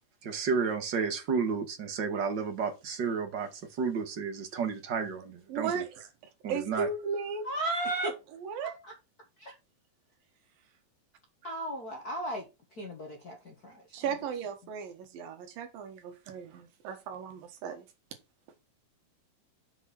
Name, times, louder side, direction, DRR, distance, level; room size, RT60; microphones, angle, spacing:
voice 1, 0.2-3.5 3.8-5.9 6.4-6.9, right 5 dB, 40° right, 1.9 m, -31 dB
voice 2, 5.5-6.1 6.5-7.5 8.0-8.7 13.9-17.8, right 5 dB, 90° right, 3.3 m, -36 dB
voice 3, 7.4-8.1 8.8-8.9 9.4-9.5 11.4-12.4 12.8-13.8, right 1 dB, 40° left, 1.4 m, -35 dB
7.3 x 4.7 x 6.0 m
omnidirectional pair, 3.9 m